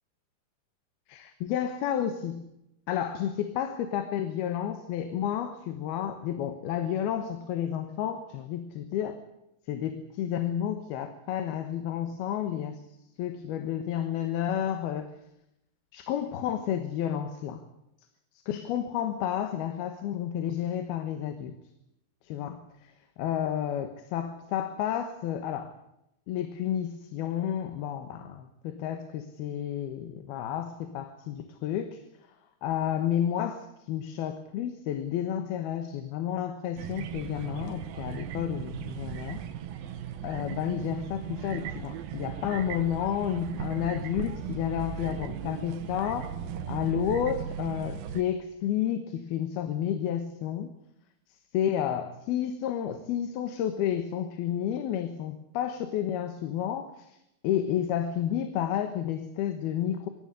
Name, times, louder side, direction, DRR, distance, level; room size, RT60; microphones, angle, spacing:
voice 1, 1.1-2.5 2.9-9.2 9.7-12.8 13.2-15.1 15.9-17.6 18.5-21.5 22.2-22.9 23.2-25.7 26.3-32.0 32.6-39.4 40.2-46.3 46.7-50.7 51.3-57.2 57.4-60.1, left 10 dB, 85° left, 9 dB, 3.2 m, -31 dB
sound 1, 36.8-48.2, right 9 dB, 75° right, 3.0 m, -37 dB
24.0 x 14.5 x 9.9 m, 0.84 s
omnidirectional pair, 4.3 m